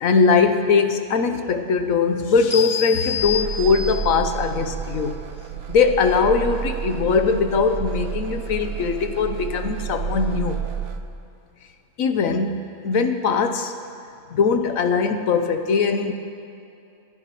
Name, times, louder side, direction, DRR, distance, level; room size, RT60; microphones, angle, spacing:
voice 1, 0.0-5.2 5.7-10.6 12.0-12.6 12.8-13.7 14.3-16.1, left 5 dB, 90° left, 7 dB, 1.2 m, -20 dB
sound 1, 2.5-4.2, left 7 dB, 20° right, 3.4 m, -28 dB
sound 2, 3.2-11.0, right 8 dB, 60° right, 0.8 m, -30 dB
29.0 x 10.0 x 3.0 m, 2.6 s
omnidirectional pair, 1.4 m